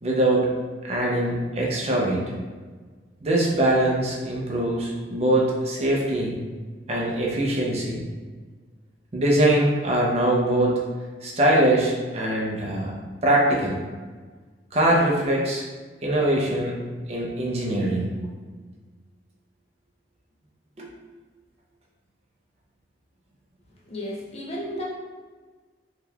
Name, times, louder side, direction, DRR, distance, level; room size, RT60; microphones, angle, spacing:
voice 1, 0.0-0.5 0.8-2.3 3.2-6.4 6.9-8.0 9.1-10.8 11.2-12.9 13.2-13.8 14.7-15.6 16.0-16.8 17.1-18.1 20.8-20.9, right 1 dB, 35° right, -3 dB, 0.5 m, -22 dB
voice 2, 23.8-24.8, left 1 dB, 35° left, -4 dB, 0.5 m, -33 dB
3.6 x 2.8 x 2.2 m, 1.4 s
head